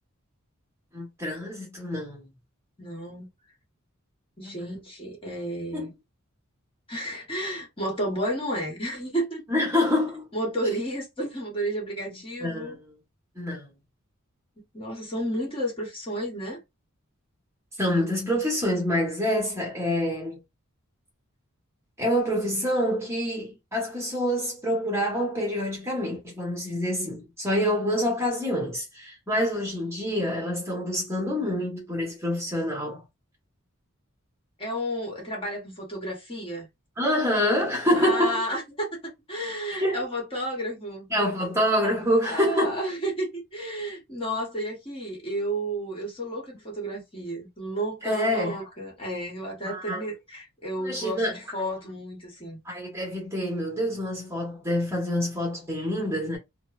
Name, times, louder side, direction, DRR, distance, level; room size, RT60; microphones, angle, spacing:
voice 1, 0.9-2.3 4.4-4.7 5.7-5.9 9.5-10.3 12.4-12.8 13.3-13.7 17.8-20.4 22.0-33.0 37.0-38.4 39.8-40.0 41.1-42.8 48.0-48.6 49.6-50.0 50.8-51.4 52.6-56.4, equal, 10° right, 1.1 m, -26 dB
voice 2, 2.8-3.3 4.4-5.9 6.9-9.4 10.3-12.8 14.7-16.6 34.6-36.7 37.9-39.0 39.3-41.1 42.2-52.6, right 1 dB, 25° left, 1.1 m, -32 dB
3.0 x 2.0 x 2.3 m
head